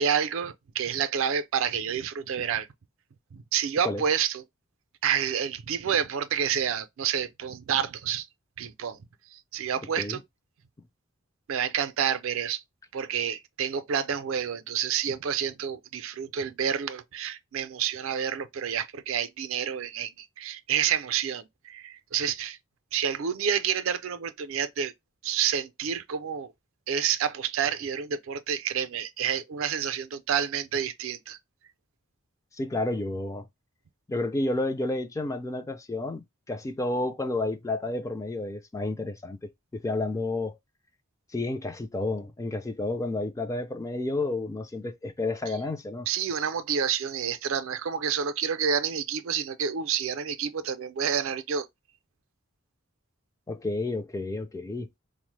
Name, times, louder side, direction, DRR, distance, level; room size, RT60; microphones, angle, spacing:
voice 1, 0.0-2.7 3.3-4.4 5.0-8.3 8.6-9.0 9.3-10.2 11.5-12.6 12.9-22.6 22.9-24.9 25.2-26.5 26.9-31.4 46.1-51.7, right 8 dB, 70° right, 0.4 m, -29 dB
voice 2, 32.5-33.5 34.1-40.6 41.3-46.1 53.5-54.9, left 2 dB, 15° left, 0.3 m, -31 dB
3.9 x 2.0 x 3.1 m
head